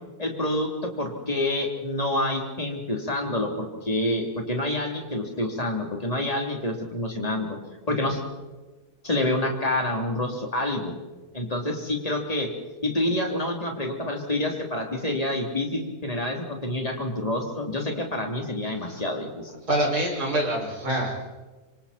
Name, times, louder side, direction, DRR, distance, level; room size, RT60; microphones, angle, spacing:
voice 1, 0.2-7.6 7.9-8.2 9.0-10.9 11.3-12.5 12.8-19.5, left 1 dB, 25° left, 1 dB, 3.5 m, -27 dB
voice 2, 19.7-21.2, right 1 dB, 85° right, -2 dB, 6.8 m, -26 dB
26.0 x 26.0 x 4.4 m, 1.2 s
omnidirectional pair, 1.6 m